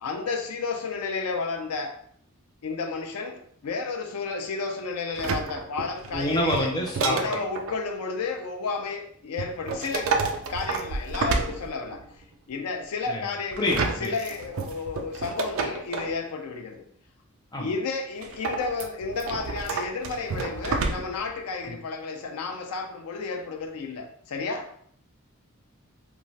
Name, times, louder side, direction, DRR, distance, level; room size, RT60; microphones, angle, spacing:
voice 1, 0.0-2.0 2.6-6.7 7.1-10.2 10.5-12.0 12.5-16.9 17.6-24.7, left 4 dB, 85° left, 3 dB, 0.4 m, -32 dB
sound 1, 5.1-7.8 9.4-12.1 13.5-16.2 18.2-21.3 21.6-21.7, right 4 dB, 65° right, 0.3 m, -30 dB
voice 2, 6.1-7.4 13.1-13.2 13.6-14.1 17.5-17.7 21.7-21.8, left 1 dB, 15° left, -1 dB, 0.5 m, -27 dB
3.0 x 2.3 x 2.6 m, 0.63 s
head